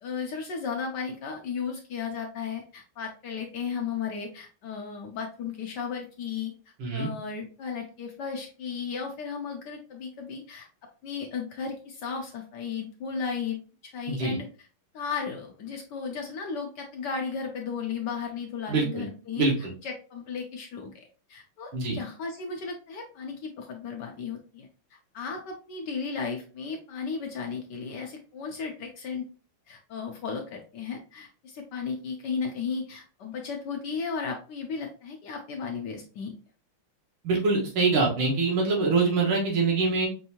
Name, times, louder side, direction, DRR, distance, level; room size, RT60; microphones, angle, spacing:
voice 1, 0.0-6.5 6.9-10.7 11.0-14.4 14.9-19.4 19.8-24.7 25.1-29.3 29.7-36.3, left 5 dB, 70° left, 2 dB, 1.1 m, -35 dB
voice 2, 14.1-14.4 18.7-19.1 19.4-19.7 21.7-22.0 37.2-40.1, right 3 dB, 75° right, -2 dB, 2.2 m, -24 dB
5.4 x 2.6 x 2.8 m, 0.38 s
omnidirectional pair, 2.3 m